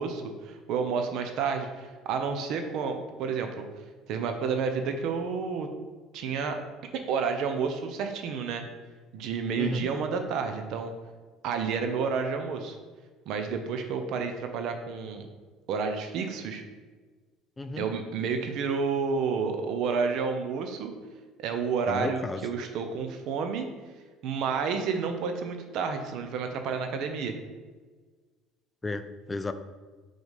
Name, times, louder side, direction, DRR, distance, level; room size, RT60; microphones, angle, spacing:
voice 1, 0.0-3.7 4.1-5.7 6.1-6.6 6.9-8.6 9.1-10.9 11.4-12.8 13.3-15.3 15.7-16.6 17.8-20.9 21.4-23.7 24.2-27.3, right 5 dB, 60° right, 6 dB, 0.6 m, -30 dB
voice 2, 9.6-9.9 17.6-17.9 21.9-22.4 28.8-29.5, left 2 dB, 15° left, 9 dB, 0.4 m, -33 dB
4.8 x 3.9 x 5.1 m, 1.4 s
cardioid pair, 125°, 0 cm